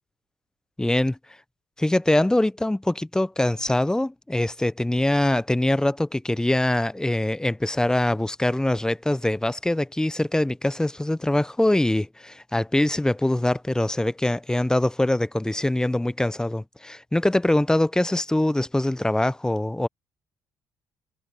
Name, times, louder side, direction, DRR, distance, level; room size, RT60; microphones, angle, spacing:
voice 1, 0.8-1.2 1.8-19.9, left 1 dB, 10° left, 0.7 m, -23 dB
supercardioid pair, 65°, 8 cm